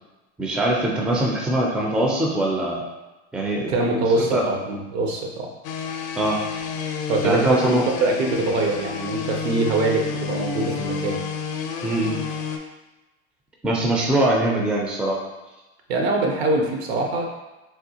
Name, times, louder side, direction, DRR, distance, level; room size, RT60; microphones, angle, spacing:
voice 1, 0.4-2.8 3.3-3.8 4.2-4.4 6.1-6.4 7.2-7.8 11.8-12.2 13.6-15.2, right 1 dB, 5° right, -2 dB, 0.4 m, -22 dB
voice 2, 3.7-5.5 7.1-11.3 15.9-17.2, right 2 dB, 70° right, 1 dB, 0.8 m, -23 dB
sound 1, 5.6-12.6, left 6 dB, 60° left, 0.5 m, -30 dB
3.5 x 2.3 x 2.7 m, 1.1 s
hypercardioid pair, 105°, 33 cm